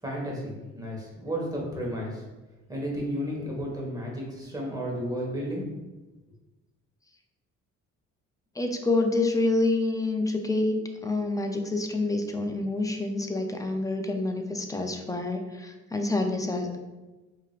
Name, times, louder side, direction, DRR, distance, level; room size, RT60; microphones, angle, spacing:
voice 1, 0.0-2.2 2.7-5.7, equal, 10° right, -3 dB, 1.3 m, -33 dB
voice 2, 8.6-10.8 11.0-16.8, left 2 dB, 10° left, 4 dB, 0.4 m, -27 dB
4.7 x 2.9 x 2.4 m, 1.1 s
cardioid pair, 90°, 30 cm